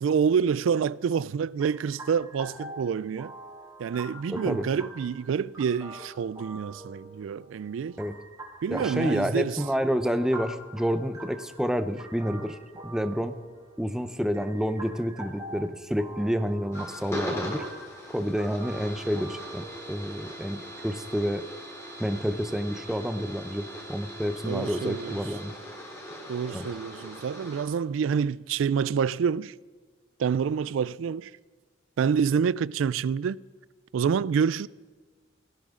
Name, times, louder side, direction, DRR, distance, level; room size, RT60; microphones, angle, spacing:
voice 1, 0.0-3.3 3.8-8.0 8.6-9.6 24.4-25.2 26.3-29.5 30.2-31.3 32.0-33.4 33.9-34.7, right 6 dB, 85° right, 0.3 m, -27 dB
sound 1, 1.6-20.8, right 1 dB, 20° right, 3.0 m, -44 dB
voice 2, 4.3-4.7 8.0-8.2 8.7-12.6 12.8-13.4 13.8-17.6 18.1-21.4 22.0-25.5 26.5-26.7, equal, 5° right, 0.7 m, -29 dB
sound 2, 16.7-27.6, equal, 15° left, 3.0 m, -40 dB
18.5 x 14.5 x 3.7 m
head